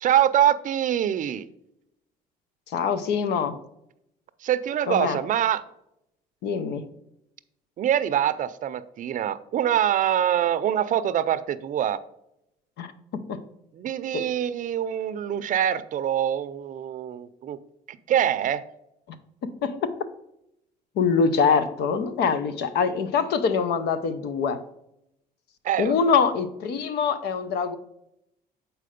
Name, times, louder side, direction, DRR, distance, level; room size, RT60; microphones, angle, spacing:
voice 1, 0.0-1.5 4.4-5.6 7.8-12.0 13.7-17.6 17.9-18.6 25.6-26.0, right 10 dB, 50° right, 14 dB, 0.5 m, -24 dB
voice 2, 2.7-3.6 4.9-5.2 6.4-6.9 12.8-13.4 14.1-14.2 19.6-19.9 21.0-24.6 25.8-27.8, left 5 dB, 75° left, 12 dB, 0.8 m, -24 dB
7.6 x 4.5 x 5.1 m, 0.81 s
cardioid pair, 110°, 17 cm